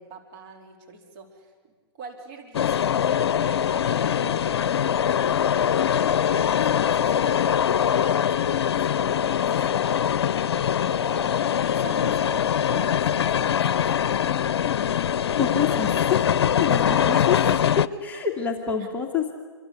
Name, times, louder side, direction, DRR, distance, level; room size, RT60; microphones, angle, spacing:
voice 1, 0.0-1.5 1.9-3.0 3.3-10.2 10.8-13.8 16.6-17.3 18.1-18.2 18.8-18.9, right 4 dB, 40° right, 2 dB, 4.2 m, -43 dB
sound 1, 2.5-17.9, left 9 dB, 70° left, 0.8 m, -23 dB
voice 2, 15.4-17.4 18.0-19.3, left 7 dB, 10° left, -1 dB, 2.3 m, -27 dB
28.5 x 24.5 x 8.4 m, 1.4 s
hypercardioid pair, 135°, 14 cm